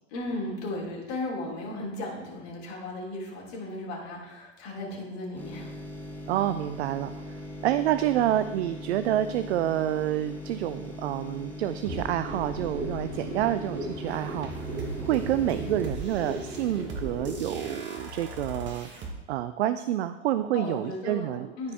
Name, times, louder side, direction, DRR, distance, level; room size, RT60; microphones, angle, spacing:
voice 1, 0.1-5.7 20.5-21.7, left 2 dB, 55° left, -3 dB, 3.2 m, -35 dB
sound 1, 5.3-17.0 17.3-17.4, left 1 dB, 5° left, 1.6 m, -40 dB
voice 2, 6.3-7.3 7.6-14.8 15.0-18.9 19.3-21.5, right 12 dB, 60° right, 12 dB, 0.5 m, -28 dB
sound 2, 11.8-17.8, right 1 dB, 75° right, 2.8 m, -37 dB
sound 3, 14.1-19.1, right 3 dB, 30° right, 1.6 m, -40 dB
14.0 x 4.7 x 3.5 m, 1.1 s
figure-of-eight pair, 90°, 37 cm